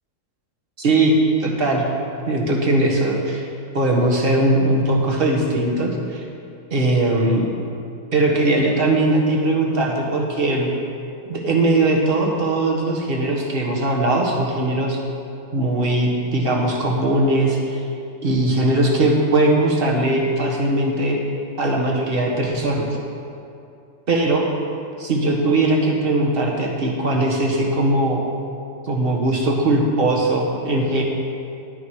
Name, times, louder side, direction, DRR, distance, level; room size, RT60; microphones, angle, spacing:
voice 1, 0.8-1.8 2.3-3.5 3.7-6.2 6.7-7.5 8.1-10.7 11.3-15.0 15.5-17.9 18.2-21.2 21.6-22.9 24.1-24.4 25.0-28.2 28.9-31.0, right 2 dB, 30° right, -1 dB, 1.5 m, -20 dB
11.0 x 9.9 x 4.8 m, 2.6 s
omnidirectional pair, 2.1 m